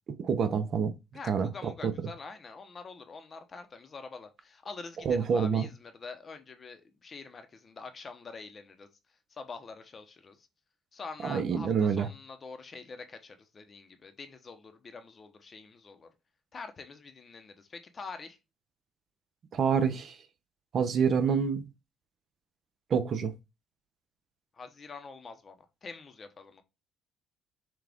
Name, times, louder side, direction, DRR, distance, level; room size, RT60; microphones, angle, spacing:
voice 1, 0.2-0.9 1.3-1.5 1.8-1.9 5.0-5.7 11.2-12.1 19.5-20.2 20.7-21.6 22.9-23.3, right 6 dB, 50° right, 0.6 m, -27 dB
voice 2, 1.1-8.9 9.3-10.5 10.9-16.1 16.5-18.4 24.5-26.6, left 4 dB, 35° left, 0.8 m, -45 dB
6.0 x 2.4 x 3.5 m
cardioid pair, 120°, 0 cm